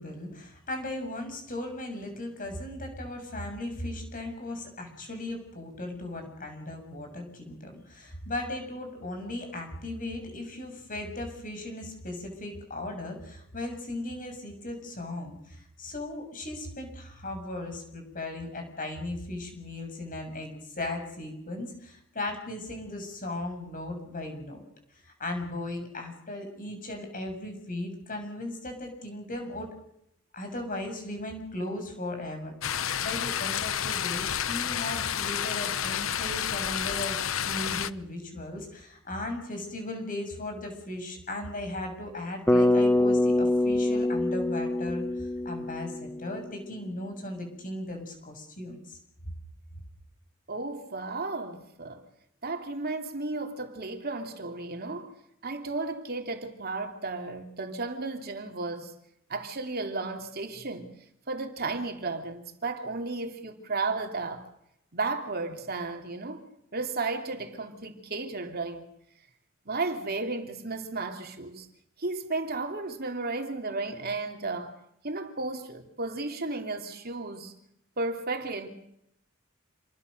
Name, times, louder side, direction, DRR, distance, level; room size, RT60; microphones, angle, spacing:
voice 1, 0.0-24.6 25.0-29.7 30.3-37.2 37.4-49.0, left 1 dB, 40° left, 7.0 m, -37 dB
sound 1, 32.6-37.9, left 9 dB, 75° left, 0.8 m, -30 dB
Bass guitar, 42.5-46.6, left 1 dB, 10° left, 1.0 m, -25 dB
voice 2, 50.5-52.0 52.4-55.1 55.4-59.0 59.3-61.0 61.3-64.5 64.9-66.4 66.7-68.9 69.7-71.7 72.0-74.8 75.0-77.5 78.0-78.7, right 3 dB, 50° right, 2.9 m, -34 dB
28.0 x 21.5 x 6.6 m
head